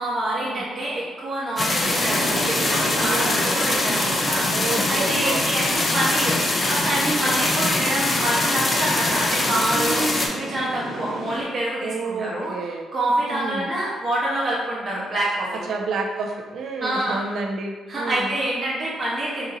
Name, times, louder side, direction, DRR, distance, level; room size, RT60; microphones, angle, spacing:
voice 1, 0.0-12.5 12.9-15.6 16.8-17.2 17.9-19.6, right 1 dB, 40° right, -7 dB, 0.8 m, -26 dB
sound 1, 1.6-10.3, left 2 dB, 30° left, 0.5 m, -23 dB
sound 2, 1.8-11.4, right 2 dB, 85° right, 1.0 m, -33 dB
voice 2, 2.9-3.4 4.5-5.5 7.0-7.3 9.7-10.2 11.8-12.8 13.2-13.7 15.5-18.3, right 3 dB, 65° right, 2 dB, 0.5 m, -30 dB
4.0 x 2.6 x 2.6 m, 1.4 s
cardioid pair, 90°, 0 cm